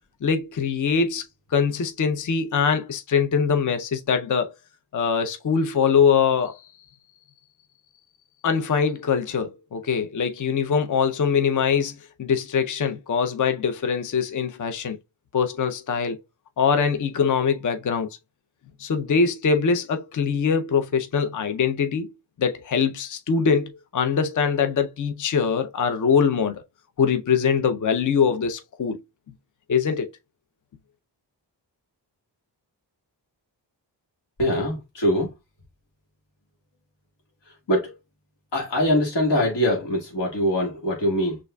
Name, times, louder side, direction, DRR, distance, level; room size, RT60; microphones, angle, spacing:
voice 1, 0.2-1.2 1.5-4.5 4.9-6.6 8.4-15.0 15.3-16.2 16.6-18.1 18.8-22.1 22.4-26.6 27.0-29.0 29.7-30.1, left 6 dB, 45° left, 0.5 m, -23 dB
voice 2, 34.4-35.3 37.7-37.9 38.5-41.4, equal, 70° left, 1.5 m, -23 dB
6.1 x 2.5 x 2.2 m
cardioid pair, 60°, 44 cm